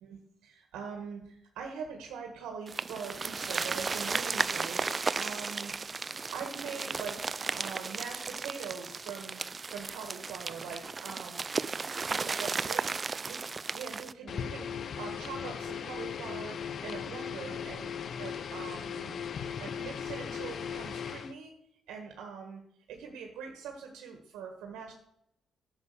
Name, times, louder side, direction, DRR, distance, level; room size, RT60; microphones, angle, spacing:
voice 1, 0.0-5.7 6.3-7.3 7.5-11.8 12.1-12.9 13.3-13.4 13.7-19.3 19.6-21.5 21.9-22.6 22.9-24.9, right 6 dB, 90° right, 2 dB, 1.7 m, -43 dB
sound 1, 2.7-14.1, right 4 dB, 35° right, 0.5 m, -34 dB
sound 2, 14.3-21.4, left 7 dB, 55° left, 0.7 m, -38 dB
11.0 x 7.2 x 6.9 m, 0.77 s
cardioid pair, 90°, 0 cm